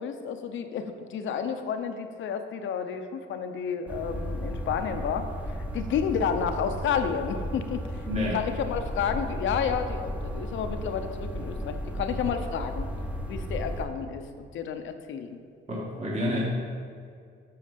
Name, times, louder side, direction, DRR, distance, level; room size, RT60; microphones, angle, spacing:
voice 1, 0.0-12.9 13.3-15.4, left 7 dB, 75° left, 7 dB, 0.8 m, -31 dB
sound 1, 3.9-13.9, equal, 5° right, 1.2 m, -34 dB
voice 2, 8.1-8.4 15.7-16.4, left 1 dB, 35° right, -6 dB, 2.1 m, -28 dB
8.6 x 6.3 x 5.3 m, 2.3 s
cardioid pair, 90°, 20 cm